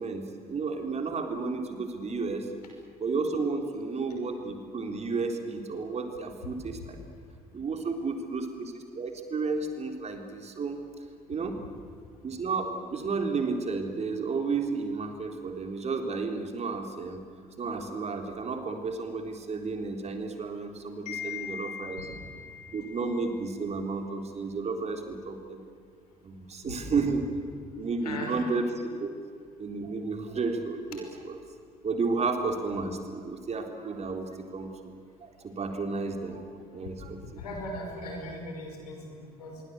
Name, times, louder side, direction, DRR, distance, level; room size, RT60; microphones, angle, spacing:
voice 1, 0.0-2.5 3.0-7.0 7.5-10.8 11.3-11.6 12.2-17.2 17.6-22.1 22.7-25.6 26.2-27.3 27.7-29.1 29.6-31.4 31.8-34.9 35.2-36.4 36.7-37.2, right 4 dB, 35° right, 5 dB, 3.9 m, -32 dB
voice 2, 21.1-23.3 26.6-26.7 28.0-28.5 37.0-39.6, left 3 dB, 75° left, 2 dB, 5.6 m, -39 dB
26.5 x 23.5 x 8.3 m, 2.3 s
figure-of-eight pair, 55°, 20 cm